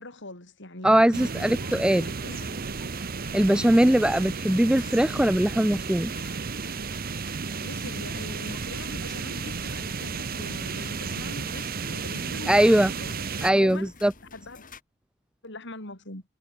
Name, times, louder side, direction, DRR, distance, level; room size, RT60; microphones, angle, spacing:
voice 1, 0.0-2.7 3.5-3.8 7.3-13.9 14.3-14.7 15.4-16.2, left 2 dB, 60° left, 6.7 m, -42 dB
voice 2, 0.8-2.1 3.3-6.1 12.5-12.9 13.4-14.1, right 1 dB, 5° right, 0.4 m, -21 dB
sound 1, 1.1-13.5, right 5 dB, 45° right, 0.9 m, -33 dB
sound 2, 1.3-14.8, left 4 dB, 40° left, 4.5 m, -50 dB
head